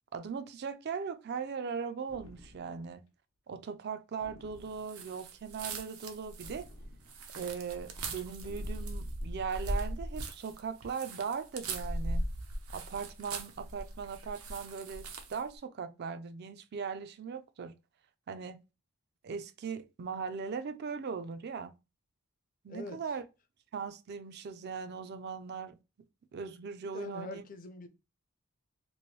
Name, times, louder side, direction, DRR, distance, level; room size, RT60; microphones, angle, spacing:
voice 1, 0.1-3.1 3.5-6.7 7.3-12.2 12.7-17.7 18.3-18.6 19.2-21.7 22.6-23.2 23.7-25.8 26.3-27.4, right 6 dB, 50° right, 0.4 m, -39 dB
sound 1, 2.1-3.0 4.2-5.2 6.4-7.4 8.4-9.3, left 1 dB, 75° left, 0.7 m, -55 dB
sound 2, 4.8-15.5, right 1 dB, 90° right, 0.7 m, -39 dB
voice 2, 22.7-23.2 26.9-27.9, left 2 dB, 40° left, 0.5 m, -44 dB
3.0 x 2.6 x 3.1 m
head